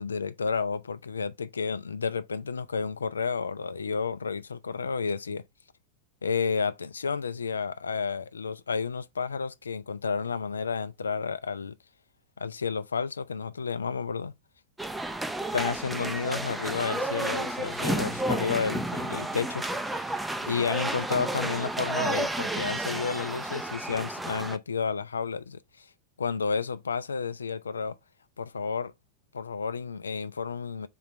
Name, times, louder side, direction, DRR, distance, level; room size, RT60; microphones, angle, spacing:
voice 1, 0.0-5.4 6.2-11.8 12.4-14.3 15.5-19.6 20.1-20.2 20.4-25.6 26.2-28.0 28.4-28.9 29.3-30.9, left 5 dB, 75° left, 0.4 m, -31 dB
sound 1, 14.8-24.6, right 1 dB, 5° right, 0.5 m, -31 dB
3.8 x 3.1 x 4.5 m
figure-of-eight pair, 90°, 0 cm